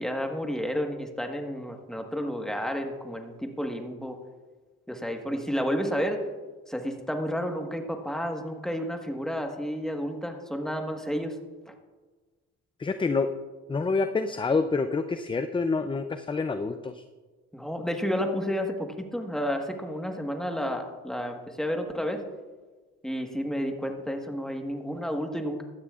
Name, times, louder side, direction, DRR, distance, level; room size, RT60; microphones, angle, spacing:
voice 1, 0.0-4.2 4.9-6.2 6.7-11.3 11.7-11.8 17.5-22.2 23.0-25.6, equal, ahead, 3 dB, 1.4 m, -31 dB
voice 2, 12.8-13.3 13.7-17.0, left 4 dB, 15° left, 9 dB, 0.5 m, -27 dB
16.0 x 12.5 x 2.5 m, 1.3 s
cardioid pair, 90°, 30 cm